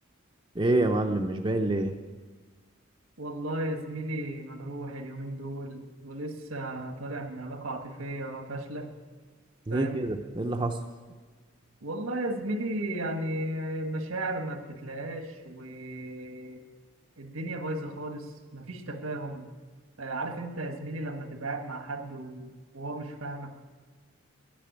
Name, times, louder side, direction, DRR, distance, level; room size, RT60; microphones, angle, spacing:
voice 1, 0.6-2.0 9.7-10.7, right 2 dB, 20° right, 4 dB, 0.5 m, -26 dB
voice 2, 3.2-8.9 9.7-10.1 11.8-16.6 17.2-19.5 20.0-23.5, right 1 dB, 75° right, 6 dB, 1.5 m, -35 dB
11.0 x 10.0 x 9.0 m, 1.4 s
head